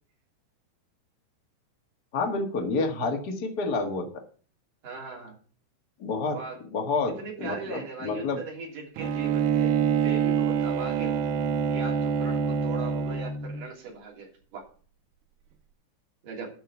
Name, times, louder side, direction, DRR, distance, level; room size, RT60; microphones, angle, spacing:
voice 1, 2.1-4.2 6.0-6.4 6.7-7.1 7.4-8.4, left 3 dB, 80° left, 2 dB, 0.9 m, -29 dB
voice 2, 4.8-5.3 6.3-6.6 7.2-11.4 11.7-14.6 16.2-16.5, right 4 dB, 50° right, -2 dB, 4.6 m, -39 dB
Bowed string instrument, 9.0-13.6, right 7 dB, 85° right, 2.3 m, -26 dB
13.0 x 4.8 x 6.9 m, 0.41 s
omnidirectional pair, 5.1 m